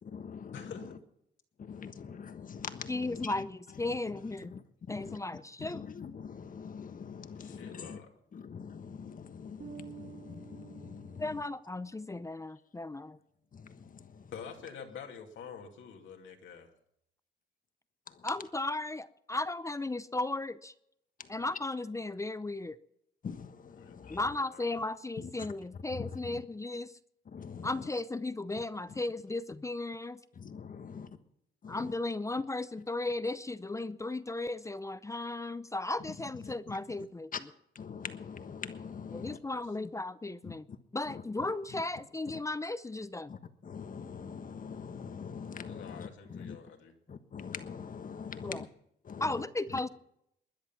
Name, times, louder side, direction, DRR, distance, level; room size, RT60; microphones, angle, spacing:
voice 1, 0.0-0.7 1.6-3.4 4.5-4.6 4.9-5.2 5.6-8.0 8.3-11.2 13.5-14.3 18.1-18.2 21.2-21.3 23.2-24.2 25.2-25.3 25.9-26.4 27.3-27.7 30.4-31.1 31.6-31.9 36.7-36.8 37.3-37.4 37.7-39.4 40.4-40.5 41.1-41.5 43.3-46.6 47.1-48.7 49.0-49.4, left 6 dB, 45° left, 1.4 m, -43 dB
voice 2, 0.5-0.8 7.3-8.1 14.3-16.7 23.8-24.6 39.4-39.6 45.6-46.9, left 7 dB, 70° left, 2.6 m, -47 dB
voice 3, 2.9-4.5 4.9-5.9 11.2-13.2 18.2-20.7 21.3-22.8 24.1-27.0 27.6-30.2 31.7-37.5 39.1-40.7 40.9-43.3 48.4-48.7 49.2-49.9, left 2 dB, 15° left, 0.6 m, -35 dB
Bass guitar, 9.6-12.0, right 8 dB, 40° right, 1.4 m, -50 dB
21.0 x 10.5 x 5.8 m
cardioid pair, 90°, 20 cm